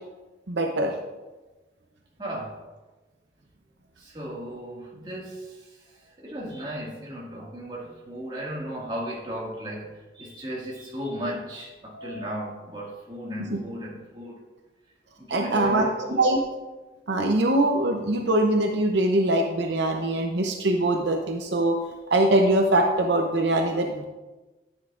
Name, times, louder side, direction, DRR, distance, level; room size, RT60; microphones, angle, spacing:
voice 1, 0.5-0.9 13.4-13.6 15.3-16.4 17.1-21.8 22.1-24.1, right 1 dB, 70° right, 3 dB, 0.7 m, -22 dB
voice 2, 2.2-2.5 4.0-14.4 15.2-16.3, equal, 25° right, -4 dB, 1.9 m, -35 dB
9.9 x 9.5 x 2.5 m, 1.2 s
head